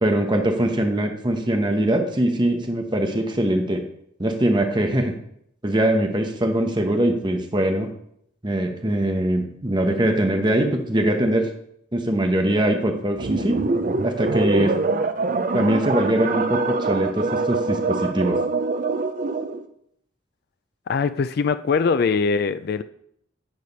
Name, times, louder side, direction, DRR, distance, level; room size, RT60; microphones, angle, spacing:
voice 1, 0.0-3.8 4.2-5.1 5.6-7.9 8.4-11.5 11.9-13.6 14.0-14.7 15.5-18.4, right 1 dB, 20° right, 1.0 m, -22 dB
sound 1, 13.2-19.6, right 3 dB, 40° right, 0.5 m, -24 dB
voice 2, 20.9-22.8, left 5 dB, 50° left, 0.3 m, -22 dB
9.6 x 5.0 x 5.3 m
head